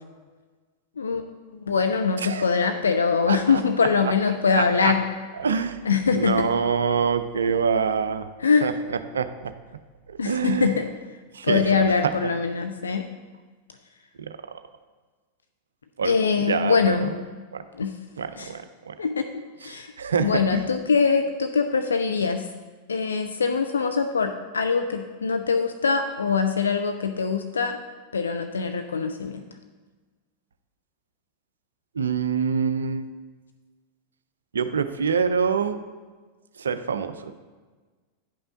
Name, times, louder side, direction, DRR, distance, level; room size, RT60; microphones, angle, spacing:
voice 1, 1.0-1.3 1.5-5.0 5.8-6.5 8.4-8.7 10.2-10.9 11.4-13.0 16.0-17.1 17.8-17.9 18.4-18.5 19.0-19.3 19.6-19.9 20.2-22.5 22.9-27.8 28.1-29.5, left 5 dB, 70° left, 7 dB, 0.4 m, -23 dB
voice 2, 3.3-3.6 4.6-4.9 5.4-5.8 6.1-8.3 8.6-9.5 10.1-10.7 11.3-11.6 12.2-12.3 14.2-14.3 16.0-17.1 17.5-17.6 18.2-19.0 20.0-20.7 32.0-33.1 34.5-35.8 36.6-37.3, right 6 dB, 70° right, 11 dB, 0.4 m, -25 dB
10.5 x 5.5 x 3.7 m, 1.4 s
figure-of-eight pair, 90°, 0 cm